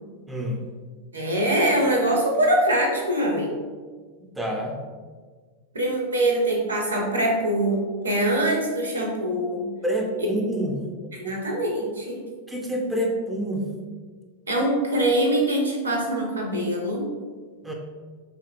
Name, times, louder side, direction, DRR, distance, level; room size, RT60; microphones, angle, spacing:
voice 1, 0.3-0.6 4.4-4.8 9.8-11.4 12.5-13.7 17.6-17.7, right 1 dB, 5° right, -1 dB, 0.4 m, -27 dB
voice 2, 1.1-3.5 5.7-9.7 11.2-12.2 14.5-17.1, right 1 dB, 75° right, 0 dB, 0.5 m, -23 dB
2.7 x 2.4 x 2.5 m, 1.5 s
figure-of-eight pair, 90°, 0 cm